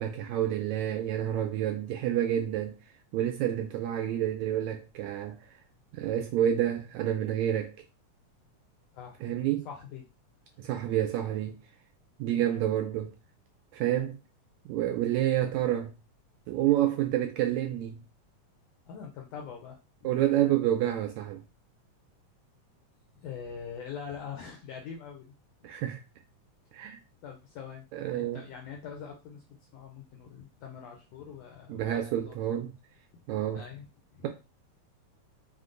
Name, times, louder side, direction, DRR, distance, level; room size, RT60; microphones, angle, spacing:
voice 1, 0.0-2.7 3.1-5.4 5.9-7.7 9.2-9.7 10.6-11.6 12.2-13.1 13.7-14.2 14.7-15.9 16.5-18.0 20.0-21.4 25.6-26.0 26.7-27.0 27.9-28.4 31.7-32.7 33.3-33.6, right 12 dB, 80° right, 1.6 m, -28 dB
voice 2, 8.9-10.0 10.6-10.7 12.4-12.6 18.9-20.1 23.2-25.3 27.2-29.5 29.7-32.6 33.5-33.9 34.1-34.2, left 7 dB, 80° left, 1.5 m, -44 dB
5.1 x 2.2 x 3.7 m
omnidirectional pair, 3.6 m